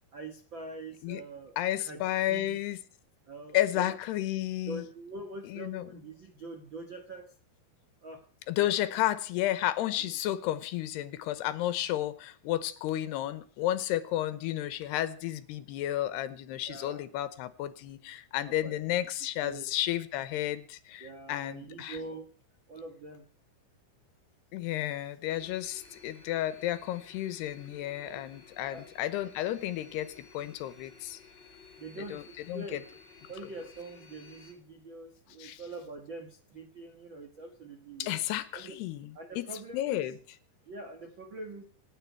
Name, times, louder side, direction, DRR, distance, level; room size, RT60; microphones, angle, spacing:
voice 1, 0.1-2.0 2.3-2.6 3.2-4.0 4.7-7.3 8.0-8.2 10.0-10.2 16.7-17.0 18.5-18.7 19.4-19.7 21.0-22.3 22.7-23.2 28.0-28.2 28.7-28.9 31.8-32.8 33.3-38.2 38.5-38.7 39.1-40.1 40.6-41.6, right 2 dB, 80° right, 5 dB, 1.0 m, -44 dB
voice 2, 1.6-2.8 3.5-4.8 5.5-5.9 8.5-22.0 24.5-31.2 32.1-32.8 35.4-35.6 38.0-39.1 39.4-39.5 39.7-40.2, left 13 dB, 75° left, 14 dB, 2.8 m, -32 dB
sound 1, 25.3-34.5, left 5 dB, 15° left, 4.1 m, -55 dB
27.0 x 9.9 x 4.6 m, 0.43 s
omnidirectional pair, 5.1 m